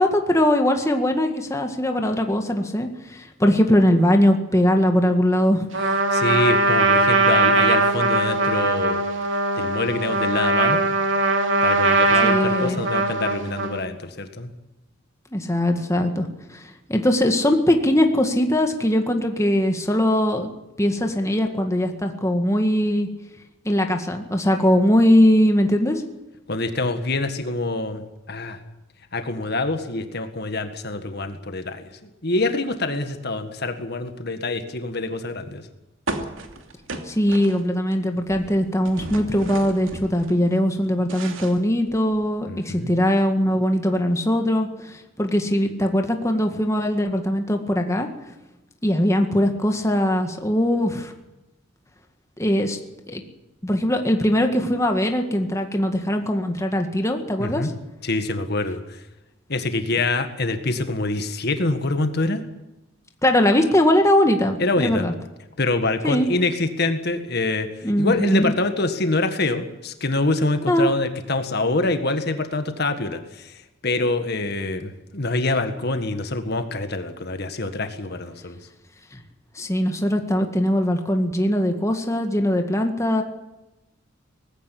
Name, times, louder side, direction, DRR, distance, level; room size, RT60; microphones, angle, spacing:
voice 1, 0.0-5.7 12.2-12.8 15.3-16.6 16.9-20.5 20.8-23.1 23.7-26.0 37.1-48.1 48.8-51.1 52.4-52.8 53.1-53.2 53.6-57.7 63.2-65.1 66.0-66.3 67.8-68.5 70.7-70.9 79.6-83.2, left 1 dB, 15° left, 4 dB, 1.9 m, -21 dB
Trumpet, 5.7-13.8, right 2 dB, 70° right, 2.7 m, -20 dB
voice 2, 6.1-9.0 9.5-10.8 11.6-14.5 26.5-28.0 28.3-28.6 29.1-35.7 42.4-42.9 57.4-57.7 58.0-59.0 59.5-62.4 64.6-65.1 65.6-78.6, left 2 dB, 55° left, 8 dB, 1.8 m, -25 dB
sound 1, 36.1-37.9 38.2-40.4 40.8-42.3, right 2 dB, 90° right, 2.7 m, -35 dB
19.5 x 15.5 x 10.0 m, 0.99 s
head